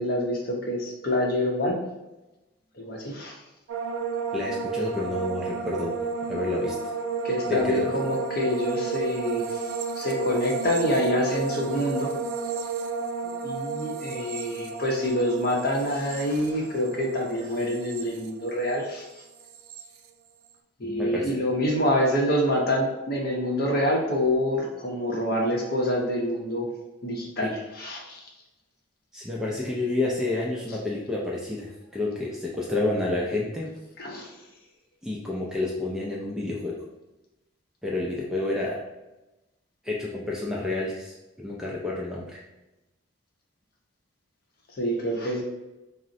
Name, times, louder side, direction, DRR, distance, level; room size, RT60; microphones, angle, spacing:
voice 1, 0.0-1.8 2.8-3.3 7.2-9.4 10.0-12.1 13.4-19.0 20.8-26.7 27.0-27.5 27.8-28.0 34.0-34.3 44.8-45.4, left 1 dB, 45° left, 0 dB, 0.6 m, -26 dB
sound 1, 3.7-18.9 19.2-19.8, right 5 dB, 90° right, 0.3 m, -32 dB
voice 2, 4.3-6.0 6.3-6.7 7.5-7.9 20.8-21.4 27.4-27.5 29.1-33.7 35.0-36.7 37.8-38.8 39.8-42.4, left 2 dB, 5° right, -4 dB, 0.3 m, -29 dB
3.7 x 2.0 x 2.6 m, 1.0 s
head